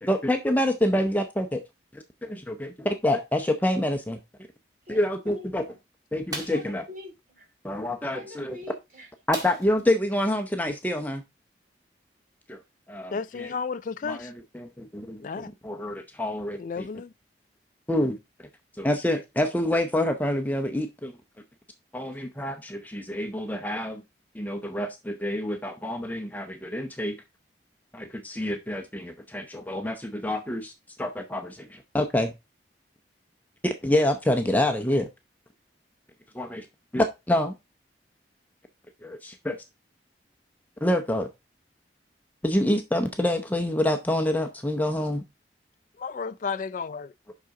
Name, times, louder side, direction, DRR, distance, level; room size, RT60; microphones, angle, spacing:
voice 1, 0.0-1.6 1.9-4.2 4.9-5.6 6.1-6.8 7.6-8.6 9.3-11.2 12.5-12.6 12.9-13.5 14.0-16.9 17.9-18.2 18.8-21.1 21.9-24.0 24.3-27.2 27.9-30.7 31.0-32.3 33.6-35.1 36.3-36.7 36.9-37.5 39.0-39.6 40.8-41.3 42.4-45.2, left 1 dB, 10° left, 0.6 m, -27 dB
voice 2, 4.9-5.8 6.5-7.5 8.1-9.1, left 1 dB, 50° right, 3.6 m, -44 dB
sound 1, 6.3-6.7 9.3-9.9 10.3-10.4 10.8-10.9, right 1 dB, 20° right, 1.8 m, -37 dB
voice 3, 13.1-14.3 15.2-15.5 16.6-17.1 46.0-47.1, left 5 dB, 45° left, 0.3 m, -32 dB
8.1 x 5.8 x 3.7 m
head